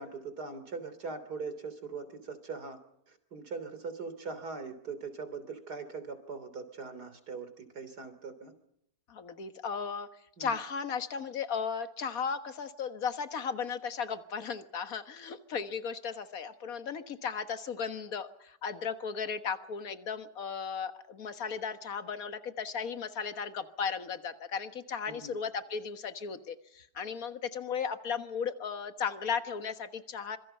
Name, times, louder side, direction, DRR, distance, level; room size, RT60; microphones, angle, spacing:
voice 1, 0.0-2.8 3.1-8.5 10.4-10.5 25.1-25.3, right 4 dB, 65° right, 10 dB, 3.8 m, -41 dB
voice 2, 9.1-10.1 10.4-30.4, left 6 dB, 55° left, 9 dB, 1.8 m, -36 dB
26.0 x 23.0 x 5.6 m, 0.75 s
omnidirectional pair, 1.9 m